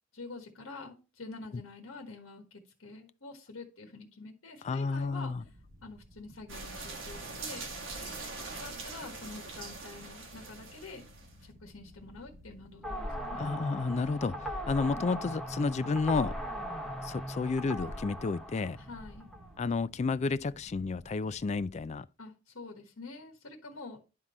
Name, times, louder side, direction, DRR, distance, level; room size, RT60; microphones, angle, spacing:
voice 1, 0.1-5.3 5.8-7.7 8.0-11.0 11.4-13.5 14.9-15.1 18.8-19.3 22.2-24.0, left 3 dB, 75° left, 1.4 m, -47 dB
voice 2, 4.6-5.4 13.4-16.3 17.0-18.8 19.6-22.1, left 4 dB, 35° left, 0.3 m, -31 dB
sound 1, 4.8-21.9, equal, 45° right, 4.9 m, -56 dB
sound 2, 6.5-11.3, right 3 dB, 65° right, 1.7 m, -42 dB
sound 3, 12.8-19.6, equal, ahead, 1.0 m, -39 dB
10.5 x 3.7 x 4.2 m
head